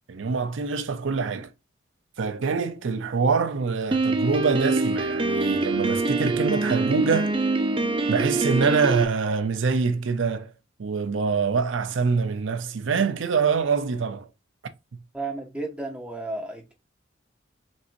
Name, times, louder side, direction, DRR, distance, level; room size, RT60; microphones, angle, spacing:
voice 1, 0.1-1.5 2.2-7.3 8.1-10.5 10.8-14.3 14.9-15.0, right 5 dB, 85° right, 0.5 m, -25 dB
Piano, 3.9-9.0, right 3 dB, 25° right, 0.3 m, -24 dB
voice 2, 15.1-16.7, right 2 dB, 5° right, 0.8 m, -33 dB
6.0 x 2.6 x 2.6 m
head